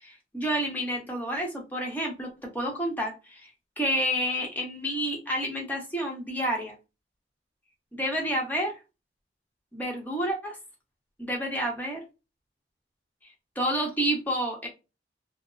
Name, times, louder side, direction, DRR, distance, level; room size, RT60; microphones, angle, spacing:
voice 1, 0.0-3.5 3.8-6.7 7.9-8.7 9.7-10.6 11.2-12.0 13.6-14.7, equal, 10° left, 0 dB, 0.9 m, -29 dB
2.9 x 2.0 x 2.4 m, 0.27 s
head